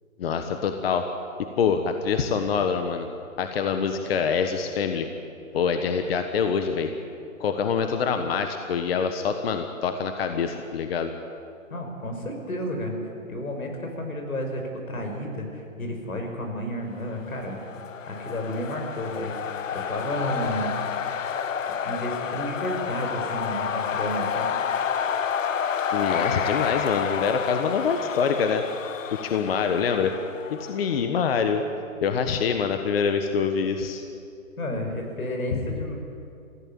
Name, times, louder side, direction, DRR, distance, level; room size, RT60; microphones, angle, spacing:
voice 1, 0.2-1.1 1.4-3.1 3.4-5.1 5.5-6.9 7.4-11.1 25.9-28.6 29.1-30.2 30.5-31.6 32.0-34.0 35.5-35.6, left 6 dB, 45° left, 6 dB, 1.3 m, -25 dB
voice 2, 11.7-12.9 13.3-14.6 14.9-17.6 18.1-19.3 19.7-20.8 21.8-24.5 34.6-36.0, left 1 dB, 85° left, 3 dB, 5.5 m, -31 dB
sound 1, 17.3-31.1, left 7 dB, 65° left, 1.2 m, -30 dB
21.0 x 15.5 x 8.9 m, 2.6 s
hypercardioid pair, 150°, 41 cm